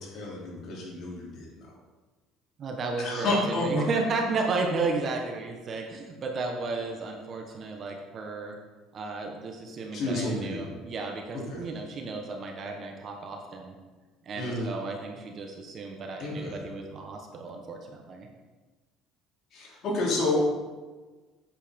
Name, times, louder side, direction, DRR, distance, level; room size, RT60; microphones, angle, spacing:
voice 1, 0.0-1.6 3.0-3.7 9.9-10.6 11.3-11.6 14.3-14.7 16.2-16.6 19.5-20.4, left 2 dB, 45° left, -4 dB, 3.4 m, -30 dB
voice 2, 2.6-8.6 8.9-13.8 14.2-18.3, right 3 dB, 35° right, 3 dB, 1.2 m, -33 dB
8.7 x 7.6 x 5.2 m, 1.3 s
cardioid pair, 145°, 0 cm